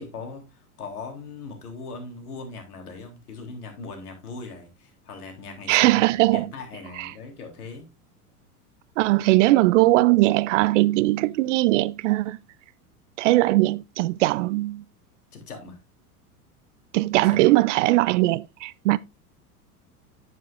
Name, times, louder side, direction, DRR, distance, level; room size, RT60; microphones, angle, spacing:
voice 1, 0.0-7.9 15.3-15.8 17.2-17.4, left 4 dB, 75° left, 3.6 m, -40 dB
voice 2, 5.7-6.5 7.0-7.1 9.0-12.4 13.2-14.8 16.9-19.0, right 18 dB, 55° right, 0.6 m, -20 dB
9.7 x 9.3 x 2.5 m
figure-of-eight pair, 85°, 45 cm